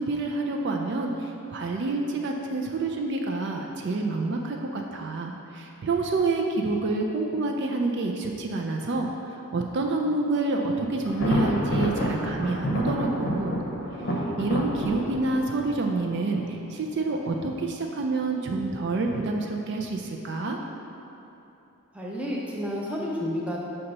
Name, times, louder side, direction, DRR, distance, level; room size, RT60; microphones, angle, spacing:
voice 1, 0.0-9.1 9.5-13.6 14.4-20.6, right 3 dB, 50° right, 1 dB, 0.4 m, -28 dB
Thunder, 11.1-16.9, equal, 50° left, 0.7 m, -29 dB
voice 2, 21.9-23.6, equal, 5° right, -4 dB, 0.6 m, -30 dB
6.4 x 2.9 x 5.4 m, 2.9 s
head